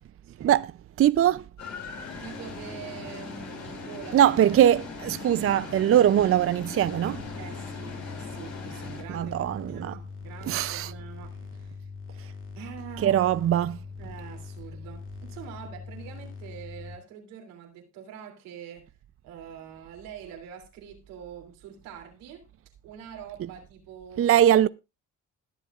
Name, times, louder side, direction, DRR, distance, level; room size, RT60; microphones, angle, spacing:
voice 1, 0.4-0.7 1.0-1.4 4.1-7.3 9.1-10.0 10.5-10.9 13.0-13.8 24.2-24.7, right 11 dB, 45° right, 0.5 m, -21 dB
sound 1, 1.6-9.0, left 4 dB, 60° left, 4.9 m, -40 dB
voice 2, 2.2-4.2 7.4-11.8 12.5-13.2 14.0-18.9 19.2-22.5 22.8-24.4, right 8 dB, 90° right, 3.0 m, -44 dB
sound 2, 6.8-17.0, left 5 dB, 40° left, 2.5 m, -42 dB
21.0 x 7.4 x 2.4 m
supercardioid pair, 70°, 33 cm